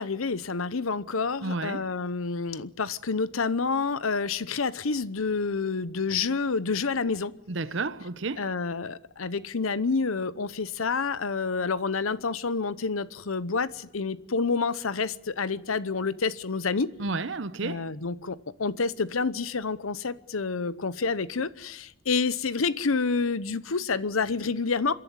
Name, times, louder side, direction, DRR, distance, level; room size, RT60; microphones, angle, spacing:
voice 1, 0.0-7.3 8.4-16.9 17.6-24.9, left 4 dB, 80° left, 0.9 m, -28 dB
voice 2, 1.4-1.8 7.5-8.5 17.0-17.8, right 3 dB, 60° right, 0.8 m, -31 dB
26.5 x 11.5 x 9.5 m
head